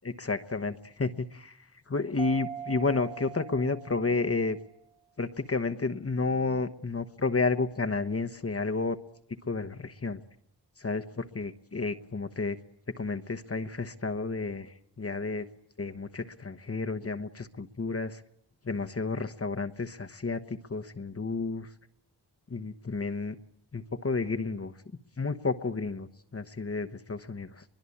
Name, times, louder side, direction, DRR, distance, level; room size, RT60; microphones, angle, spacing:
voice 1, 0.0-4.6 5.2-9.0 9.4-10.2 10.8-12.6 13.0-15.5 15.8-18.2 18.6-21.7 22.5-23.4 23.7-24.7 25.2-27.6, left 3 dB, 35° left, 8 dB, 1.1 m, -31 dB
Mallet percussion, 2.2-4.7, right 8 dB, 55° left, 1.8 m, -42 dB
22.5 x 22.0 x 8.6 m, 0.75 s
cardioid pair, 65°, 43 cm